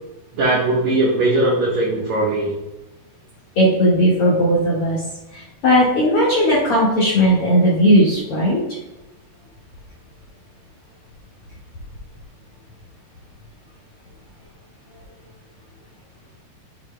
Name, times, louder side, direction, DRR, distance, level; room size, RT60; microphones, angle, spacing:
voice 1, 0.3-2.6, right 2 dB, 65° right, -3 dB, 1.8 m, -19 dB
voice 2, 3.6-5.0 5.3-8.6, equal, 50° left, -7 dB, 2.0 m, -16 dB
11.0 x 7.6 x 2.2 m, 1.0 s
omnidirectional pair, 4.6 m